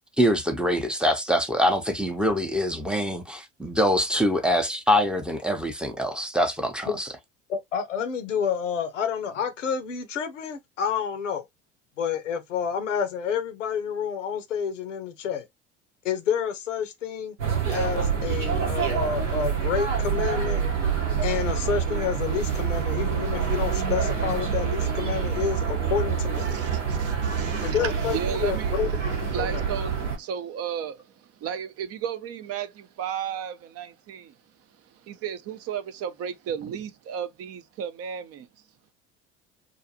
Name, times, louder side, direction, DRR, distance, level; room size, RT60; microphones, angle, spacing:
voice 1, 0.2-7.1, equal, 5° right, 0.6 m, -24 dB
voice 2, 7.5-11.4 12.0-15.5 16.0-17.4 17.7-20.6 21.2-26.4 27.6-28.9 29.4-29.6, left 7 dB, 85° left, 0.6 m, -29 dB
sound 1, 17.4-30.2, right 6 dB, 85° right, 1.0 m, -26 dB
voice 3, 26.3-29.0 29.3-34.4 34.8-38.5, right 8 dB, 40° right, 0.5 m, -34 dB
2.5 x 2.4 x 2.7 m
hypercardioid pair, 65°, 36 cm